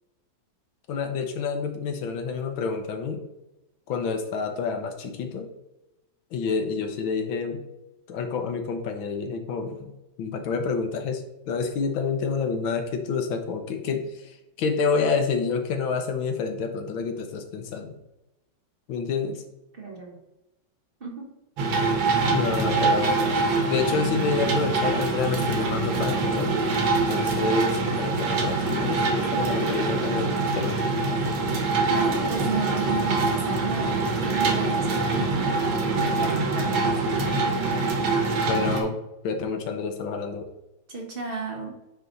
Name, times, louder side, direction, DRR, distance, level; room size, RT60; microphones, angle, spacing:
voice 1, 0.9-3.2 3.9-5.5 6.3-7.6 8.1-9.9 10.2-17.9 18.9-19.4 22.3-26.5 26.9-30.9 38.5-39.0 39.2-40.5, left 5 dB, 85° left, 5 dB, 1.7 m, -28 dB
voice 2, 19.7-20.2 21.0-21.3 31.9-37.3 40.9-41.8, right 4 dB, 30° right, -1 dB, 1.4 m, -33 dB
sound 1, 21.6-38.8, right 3 dB, 80° right, 1.8 m, -24 dB
9.0 x 3.2 x 3.9 m, 0.93 s
omnidirectional pair, 2.1 m